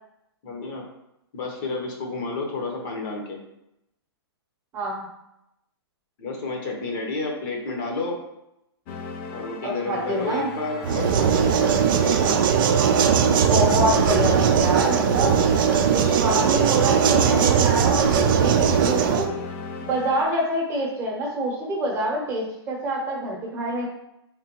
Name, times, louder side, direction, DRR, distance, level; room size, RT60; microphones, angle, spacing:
voice 1, 0.4-0.9 1.3-3.4 6.2-8.2 9.3-12.4, left 3 dB, 45° left, 1 dB, 0.9 m, -31 dB
voice 2, 4.7-5.1 9.6-10.5 13.4-15.4 15.9-19.3 19.8-23.9, right 1 dB, 20° right, -2 dB, 0.9 m, -26 dB
sound 1, 8.9-20.2, left 5 dB, 30° left, 0.4 m, -36 dB
sound 2, 10.8-19.3, right 7 dB, 55° right, 0.4 m, -19 dB
3.5 x 3.3 x 2.9 m, 0.84 s
hypercardioid pair, 150°, 14 cm